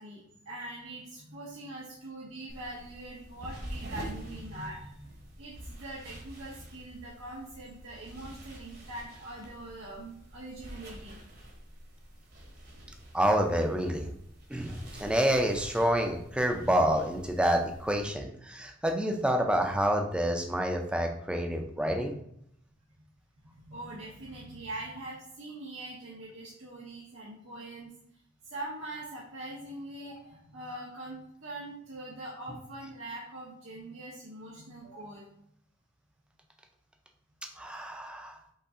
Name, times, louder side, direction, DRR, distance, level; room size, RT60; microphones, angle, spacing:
voice 1, 0.0-11.2 23.5-27.9 28.4-35.2, right 1 dB, 85° right, -6 dB, 1.0 m, -43 dB
sound 1, 2.5-18.1, right 1 dB, 50° right, 1.1 m, -47 dB
voice 2, 13.1-14.1 14.5-22.1 37.6-38.4, equal, 5° right, 3 dB, 0.5 m, -28 dB
5.4 x 2.6 x 3.7 m, 0.72 s
head